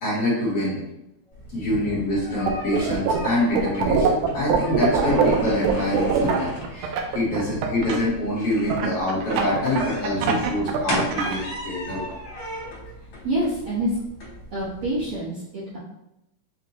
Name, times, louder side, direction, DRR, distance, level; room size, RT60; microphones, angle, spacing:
voice 1, 0.0-0.8 1.5-12.1, left 1 dB, 60° left, -8 dB, 1.7 m, -25 dB
sound 1, 1.3-15.2, equal, 85° left, 1.0 m, -37 dB
voice 2, 1.5-2.0 4.3-4.4 7.2-7.7 10.1-10.5 13.2-13.9 14.5-15.8, right 1 dB, 65° right, -10 dB, 1.4 m, -28 dB
sound 2, 2.5-3.3 3.5-8.0 8.7-11.4, right 7 dB, 85° right, 1.6 m, -22 dB
6.3 x 2.1 x 2.8 m, 0.87 s
omnidirectional pair, 3.7 m